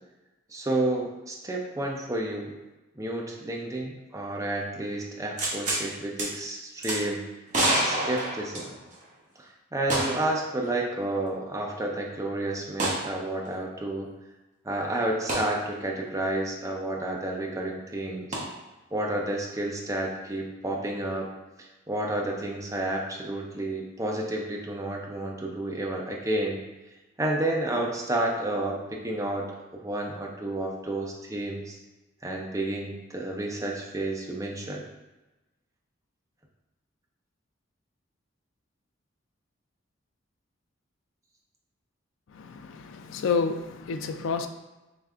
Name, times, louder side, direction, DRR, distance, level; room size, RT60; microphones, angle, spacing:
voice 1, 0.5-2.5 3.0-7.2 7.8-8.8 9.4-14.1 14.6-18.3 18.9-21.3 21.6-26.6 27.2-31.8 32.2-34.8, right 1 dB, 15° right, -1 dB, 0.5 m, -30 dB
sound 1, 5.4-5.8 6.2-6.3 6.8-7.0 7.5-9.0 9.9-10.3 10.7-10.8 12.8-13.1 15.3-15.5 18.3-18.4, right 1 dB, 40° right, 0.8 m, -27 dB
voice 2, 42.3-44.5, left 5 dB, 75° left, 7 dB, 0.3 m, -29 dB
4.9 x 3.2 x 2.4 m, 1.1 s
head